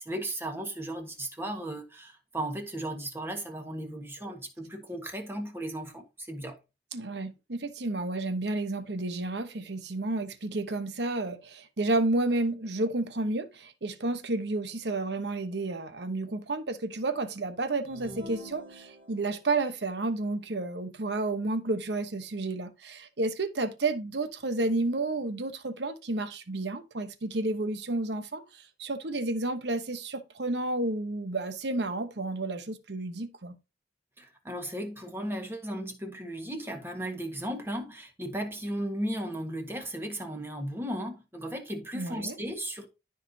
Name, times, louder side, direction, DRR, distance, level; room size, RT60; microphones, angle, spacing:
voice 1, 0.0-6.6 34.2-42.9, right 1 dB, 15° right, 1.5 m, -36 dB
voice 2, 6.9-33.5 41.9-42.4, right 2 dB, 70° right, 1.0 m, -31 dB
sound 1, 17.9-19.4, equal, 35° right, 3.0 m, -45 dB
13.0 x 4.9 x 2.8 m
head